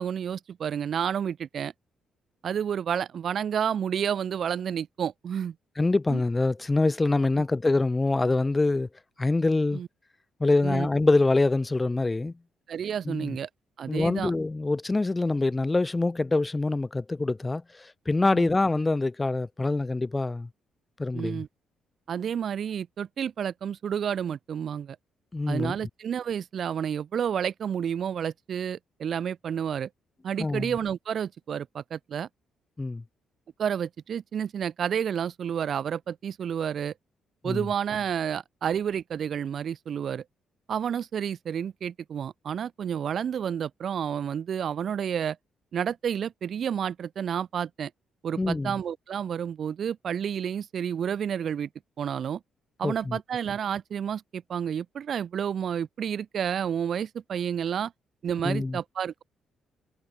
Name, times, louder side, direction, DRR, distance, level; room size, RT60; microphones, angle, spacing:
voice 1, 0.0-1.7 2.4-5.5 6.1-6.2 9.7-9.9 10.6-10.9 12.7-13.5 13.8-14.3 18.3-18.5 21.1-21.5 22.1-25.0 25.5-29.9 30.2-32.3 33.6-36.9 37.4-40.2 40.7-45.4 45.7-47.9 48.2-51.7 52.0-52.4 52.8-57.9 58.2-59.2, right 8 dB, 55° right, 0.6 m, -30 dB
voice 2, 5.8-8.9 9.2-9.8 10.4-12.3 13.0-13.4 13.9-20.5 21.0-21.4 25.3-25.8 30.4-30.7 32.8-33.0 37.4-37.7 48.4-48.7 52.8-53.2 58.4-58.8, left 2 dB, 20° left, 0.8 m, -25 dB
cardioid pair, 90°, 0 cm